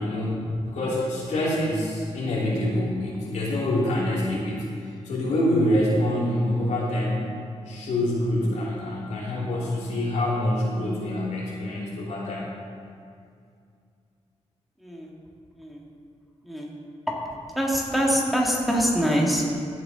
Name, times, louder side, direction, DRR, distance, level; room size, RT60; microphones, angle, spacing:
voice 1, 0.0-7.3 7.7-12.5, left 1 dB, 85° left, -5 dB, 2.7 m, -26 dB
voice 2, 14.8-15.1 15.6-15.8 16.4-16.7 17.1-17.2 17.6-19.5, equal, ahead, -3 dB, 1.9 m, -24 dB
14.5 x 7.7 x 4.0 m, 2.4 s
cardioid pair, 100°, 12 cm